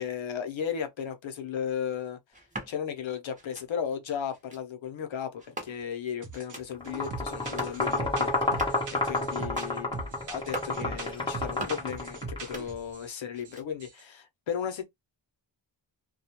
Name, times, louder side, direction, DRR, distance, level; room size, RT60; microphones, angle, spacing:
voice 1, 0.0-2.2 2.7-14.9, left 8 dB, 80° left, 0.7 m, -35 dB
sound 1, 2.3-2.7 3.3-3.7 4.3-4.6 5.4-6.0 6.3-6.7 7.3-7.8 8.3-8.9 9.3-9.7 10.3-10.8 11.3-11.9 12.3-13.1 13.3-13.9, right 2 dB, 15° right, 0.9 m, -43 dB
sound 2, 6.2-6.6 6.8-13.1 13.5-13.6 13.8-14.0, right 3 dB, 40° right, 0.6 m, -41 dB
sound 3, 6.8-12.5, left 2 dB, 10° left, 0.8 m, -30 dB
2.3 x 2.1 x 2.8 m
wide cardioid pair, 90°, 46 cm